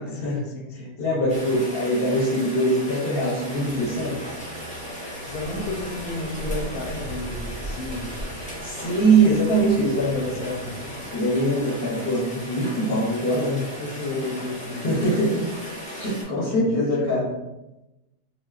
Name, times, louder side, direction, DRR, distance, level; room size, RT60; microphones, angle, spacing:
voice 1, 0.0-1.6 5.2-8.2 9.9-11.0 13.6-15.0 16.3-17.3, left 2 dB, 85° left, 2 dB, 1.1 m, -33 dB
voice 2, 1.0-4.2 8.6-10.3 11.1-13.6 14.8-15.4 15.8-17.3, right 1 dB, 50° left, -5 dB, 0.9 m, -22 dB
Rain, 1.3-16.2, equal, 5° left, 0.7 m, -36 dB
sound 1, 3.4-12.1, right 1 dB, 45° right, 0.4 m, -42 dB
3.6 x 2.4 x 2.3 m, 0.97 s
omnidirectional pair, 1.5 m